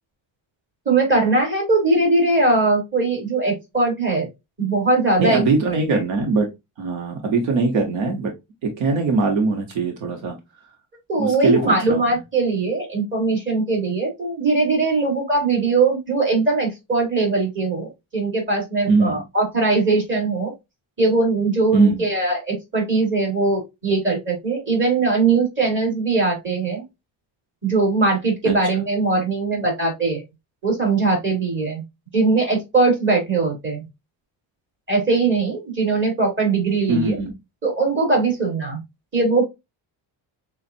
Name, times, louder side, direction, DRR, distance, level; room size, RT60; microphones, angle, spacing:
voice 1, 0.8-4.3 4.6-6.0 11.1-20.5 21.0-26.8 27.6-30.2 30.6-31.8 32.1-33.8 34.9-37.2 37.6-38.8 39.1-39.4, right 3 dB, 25° right, -2 dB, 2.9 m, -20 dB
voice 2, 5.2-6.5 6.8-8.3 8.6-10.3 11.2-12.1 18.9-19.2 21.7-22.0 28.4-28.5 36.9-37.4, right 3 dB, 75° right, 3 dB, 1.3 m, -21 dB
7.0 x 2.5 x 2.6 m, 0.21 s
cardioid pair, 145°, 46 cm